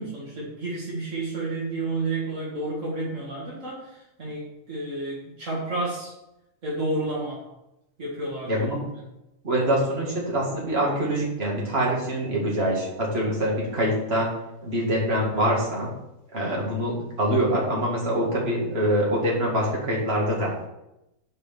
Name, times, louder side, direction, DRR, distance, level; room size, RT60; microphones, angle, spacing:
voice 1, 0.0-3.8 4.2-6.1 6.6-7.4 8.0-8.5, right 2 dB, 65° right, -6 dB, 2.2 m, -30 dB
voice 2, 8.5-8.8 9.4-14.3 14.6-15.9 16.3-20.5, right 1 dB, 45° right, -4 dB, 2.7 m, -24 dB
6.9 x 5.0 x 6.8 m, 0.88 s
omnidirectional pair, 1.4 m